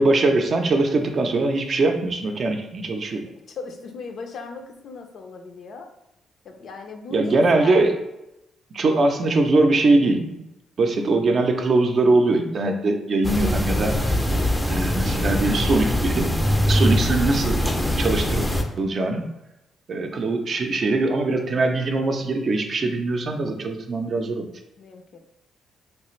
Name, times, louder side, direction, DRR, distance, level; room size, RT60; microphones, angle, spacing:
voice 1, 0.0-3.2 7.1-7.9 8.7-10.4 10.8-14.2 14.7-16.3 16.7-17.6 18.0-18.4 18.8-19.3 19.9-24.5, right 2 dB, 50° right, 4 dB, 0.5 m, -21 dB
voice 2, 3.5-5.9 6.4-7.8 24.8-25.2, left 4 dB, 60° left, 4 dB, 0.5 m, -37 dB
sound 1, 13.2-18.6, left 1 dB, 10° left, 0.4 m, -22 dB
3.2 x 2.4 x 3.1 m, 0.88 s
cardioid pair, 90°, 0 cm